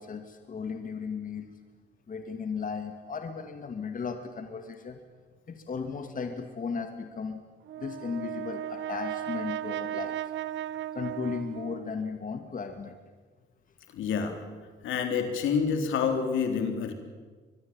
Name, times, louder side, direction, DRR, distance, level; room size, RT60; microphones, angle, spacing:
voice 1, 0.0-1.5 2.1-5.0 5.5-7.4 7.8-10.2 10.9-13.0, left 5 dB, 45° left, 6 dB, 2.4 m, -36 dB
Brass instrument, 7.7-12.1, right 12 dB, 70° right, 0.7 m, -36 dB
voice 2, 13.9-14.4 14.8-16.9, left 6 dB, 80° left, 5 dB, 3.7 m, -28 dB
24.5 x 20.5 x 9.0 m, 1.4 s
cardioid pair, 90°, 20 cm